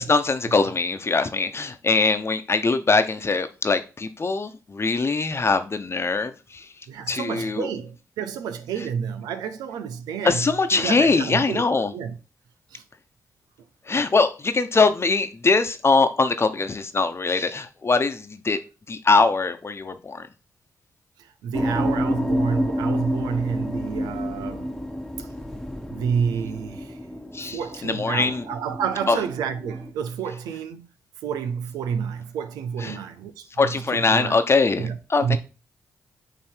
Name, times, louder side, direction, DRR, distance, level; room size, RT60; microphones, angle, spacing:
voice 1, 0.0-6.7 7.1-7.7 10.2-11.9 13.9-18.6 18.9-20.3 27.3-28.4 29.1-29.2 32.8-33.0 33.6-35.4, left 4 dB, 40° left, 1.0 m, -22 dB
voice 2, 6.9-11.6 11.9-12.2 12.7-12.8 21.2-24.7 25.2-25.3 25.9-27.0 27.5-30.9 31.2-34.4 34.8-35.4, right 7 dB, 85° right, 0.6 m, -29 dB
sound 1, 21.5-29.9, equal, 5° left, 1.2 m, -29 dB
8.7 x 3.0 x 4.6 m
supercardioid pair, 45°, 6 cm